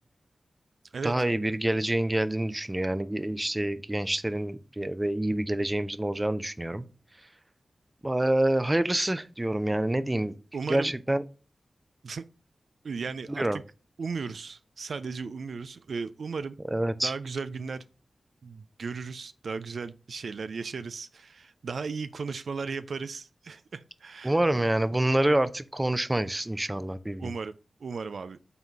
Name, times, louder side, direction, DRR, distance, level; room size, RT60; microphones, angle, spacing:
voice 1, 1.0-6.8 8.0-10.4 10.7-11.2 13.4-13.6 16.7-17.1 24.2-27.3, right 1 dB, 20° right, 13 dB, 0.6 m, -27 dB
voice 2, 10.5-10.9 12.0-12.2 12.8-13.6 14.0-16.6 17.0-17.8 18.4-24.4 27.2-27.5 27.8-28.4, right 5 dB, 80° right, 12 dB, 0.3 m, -36 dB
5.9 x 3.7 x 5.3 m, 0.35 s
cardioid pair, 40°, 0 cm